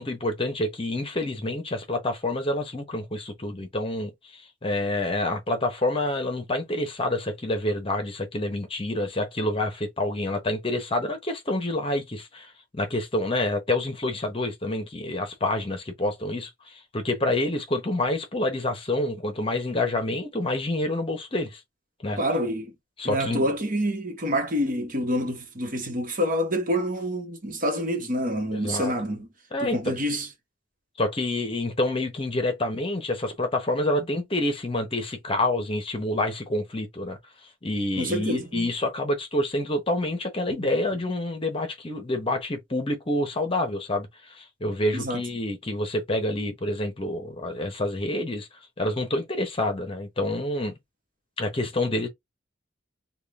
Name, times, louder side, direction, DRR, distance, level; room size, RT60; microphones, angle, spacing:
voice 1, 0.0-21.6 22.0-22.2 23.0-23.5 28.5-28.9 29.5-30.0 31.0-37.2 37.6-48.5 48.8-50.7 51.4-52.1, left 1 dB, 30° left, 0.9 m, -28 dB
voice 2, 22.2-22.7 23.0-29.3 29.6-30.3 38.0-38.7 40.5-40.7 44.9-45.2, equal, 45° right, 1.2 m, -27 dB
3.6 x 2.4 x 3.5 m
head